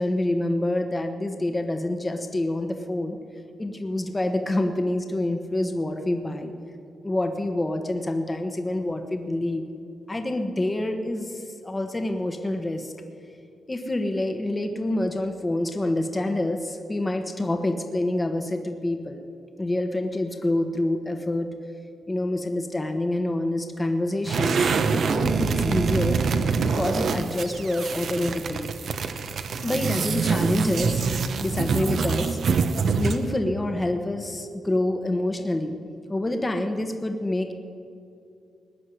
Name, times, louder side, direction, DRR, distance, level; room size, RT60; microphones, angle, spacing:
voice 1, 0.0-3.2 3.6-6.5 7.0-9.6 10.1-12.9 13.7-19.2 19.6-21.5 22.1-26.2 26.6-28.7 29.6-32.4 33.0-35.8 36.1-37.5, left 1 dB, 20° left, 5 dB, 1.1 m, -27 dB
sound 1, 24.2-33.3, right 5 dB, 65° right, 0.9 m, -25 dB
19.0 x 6.4 x 9.9 m, 2.5 s
cardioid pair, 95°, 0 cm